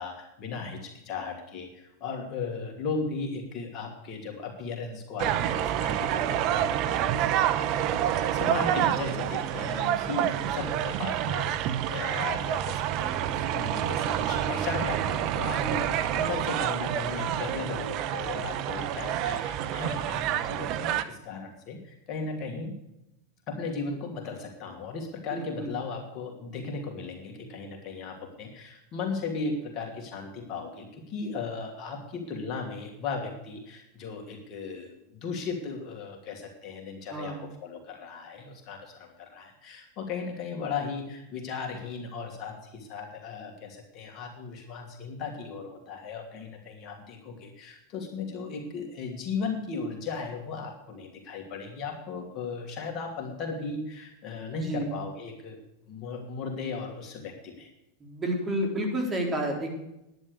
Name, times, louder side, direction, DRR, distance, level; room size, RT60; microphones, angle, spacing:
voice 1, 0.0-22.8 23.5-34.9 35.2-57.7, left 4 dB, 45° left, 2 dB, 2.8 m, -36 dB
sound 1, 5.2-21.0, right 11 dB, 50° right, 0.9 m, -28 dB
voice 2, 15.5-15.9 25.3-25.7 37.1-37.4 54.5-54.9 58.0-59.7, right 1 dB, 25° right, 1 dB, 3.9 m, -31 dB
10.5 x 10.0 x 6.7 m, 0.87 s
hypercardioid pair, 95°, 0 cm